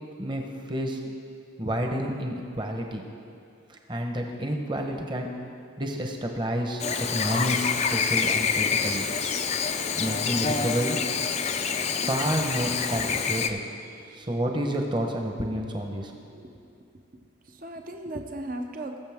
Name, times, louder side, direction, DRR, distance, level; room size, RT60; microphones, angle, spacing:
voice 1, 0.2-1.1 1.6-3.0 3.7-5.3 5.8-9.1 10.0-11.0 12.0-13.6 14.1-16.4, equal, 25° right, 2 dB, 1.0 m, -30 dB
Chirp tweet / Buzz, 6.8-13.5, left 5 dB, 30° left, 0.4 m, -27 dB
voice 2, 13.5-14.3 16.4-16.6 17.1-19.0, right 1 dB, 40° right, 4 dB, 0.6 m, -39 dB
20.5 x 6.9 x 3.6 m, 2.4 s
head